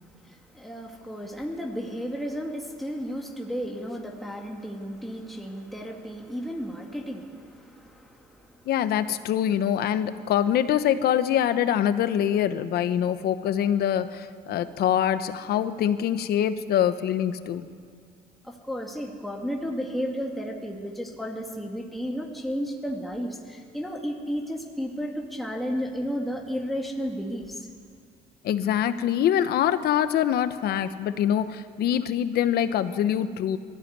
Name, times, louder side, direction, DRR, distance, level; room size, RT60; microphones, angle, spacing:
voice 1, 0.0-8.7 18.4-27.7, equal, ahead, -1 dB, 2.2 m, -33 dB
voice 2, 8.7-17.7 28.4-33.6, left 10 dB, 70° left, 12 dB, 1.1 m, -24 dB
21.0 x 14.5 x 9.6 m, 2.2 s
cardioid pair, 110°, 17 cm